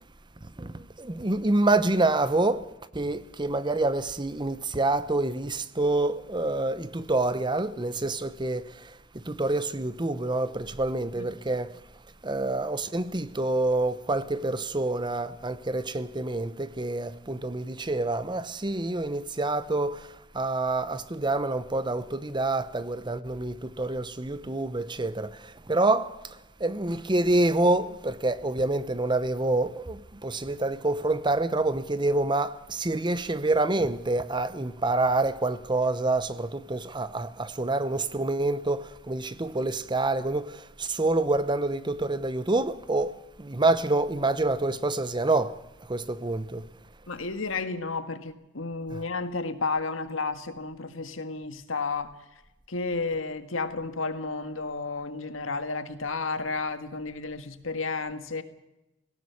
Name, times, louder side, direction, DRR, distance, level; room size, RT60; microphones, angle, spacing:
voice 1, 0.4-2.7 2.9-11.8 12.2-26.2 26.6-46.7 48.9-49.0, right 2 dB, 25° right, 0.9 m, -27 dB
voice 2, 47.1-52.1 52.7-58.4, left 3 dB, 85° left, 1.7 m, -32 dB
19.0 x 17.0 x 8.6 m
head